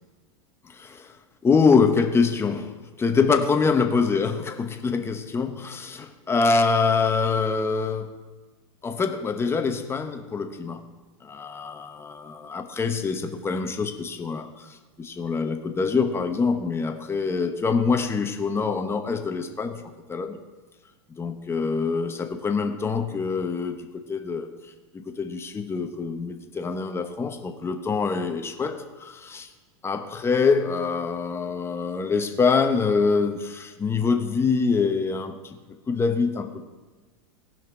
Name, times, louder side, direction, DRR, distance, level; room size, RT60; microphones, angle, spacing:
voice 1, 0.7-1.1 1.4-8.1 8.8-10.8 11.2-14.7 15.0-19.8 20.1-20.4 21.2-24.5 24.9-29.5 29.8-35.6 35.9-36.6, left 5 dB, 15° left, 6 dB, 1.0 m, -25 dB
17.5 x 5.9 x 4.5 m, 1.3 s
supercardioid pair, 120°, 15 cm